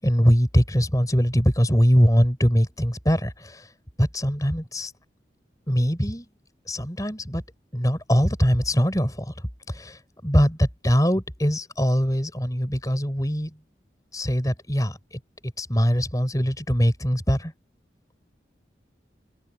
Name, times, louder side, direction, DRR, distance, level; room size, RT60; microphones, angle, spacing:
voice 1, 0.0-3.6 4.0-4.9 5.7-6.3 6.7-7.4 7.7-9.3 9.7-13.5 14.1-17.5, equal, 20° left, 5.6 m, -22 dB
head